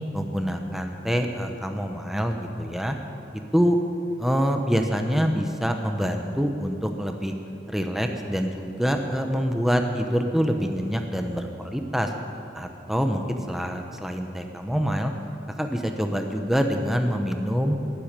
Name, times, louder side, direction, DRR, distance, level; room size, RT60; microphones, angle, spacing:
voice 1, 0.1-3.0 3.5-3.8 4.2-7.3 7.7-12.1 12.5-15.1 15.6-17.8, equal, ahead, 4 dB, 0.8 m, -25 dB
11.5 x 10.5 x 9.9 m, 2.9 s
head